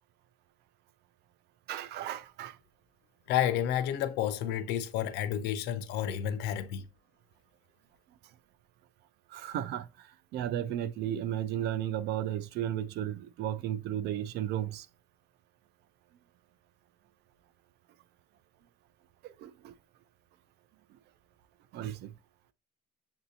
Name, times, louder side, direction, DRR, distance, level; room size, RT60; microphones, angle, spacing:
voice 1, 1.7-2.6 9.3-14.9 19.2-19.7 21.7-22.1, right 11 dB, 75° right, 0.5 m, -34 dB
voice 2, 3.3-6.9, left 10 dB, 90° left, 0.6 m, -30 dB
7.0 x 2.7 x 2.7 m
cardioid pair, 110°, 17 cm